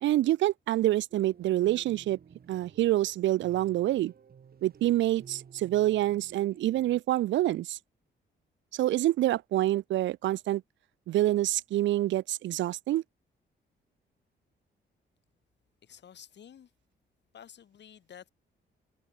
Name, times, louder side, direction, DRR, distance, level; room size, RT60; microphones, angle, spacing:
voice 1, 0.0-2.2 2.5-4.1 4.6-7.8 8.7-10.6 11.1-13.0, right 14 dB, 75° right, 0.4 m, -27 dB
sound 1, 1.1-7.0, right 7 dB, 55° right, 4.1 m, -53 dB
voice 2, 15.8-16.7 17.3-18.3, left 8 dB, 65° left, 4.5 m, -51 dB
cardioid pair, 85°, 19 cm